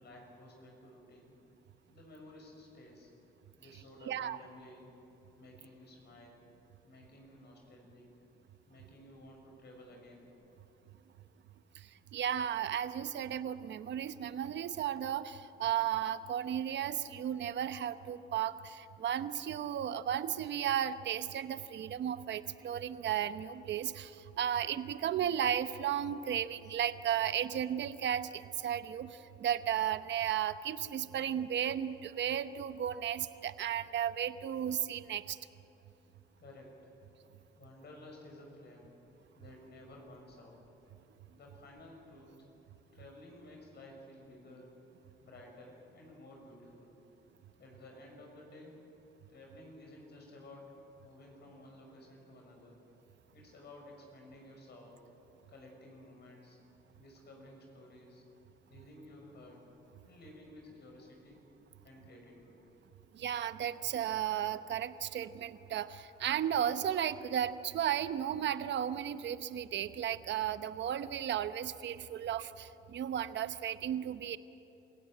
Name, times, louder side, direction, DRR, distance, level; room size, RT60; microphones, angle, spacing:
voice 1, 0.0-1.3 1.9-3.1 3.6-4.9 5.4-6.4 6.8-8.1 8.7-10.3 36.4-36.9 37.6-38.9 39.4-40.6 41.3-42.5 42.9-44.7 45.2-47.0 47.6-48.8 49.3-52.8 53.3-55.0 55.5-56.6 57.0-58.2 58.7-59.6 60.0-61.4 61.8-62.6, left 1 dB, 55° left, 0 dB, 6.2 m, -54 dB
voice 2, 4.1-4.4 11.7-35.4 63.1-74.4, right 10 dB, 65° right, 12 dB, 1.0 m, -34 dB
28.0 x 16.5 x 9.1 m, 2.9 s
cardioid pair, 90°, 20 cm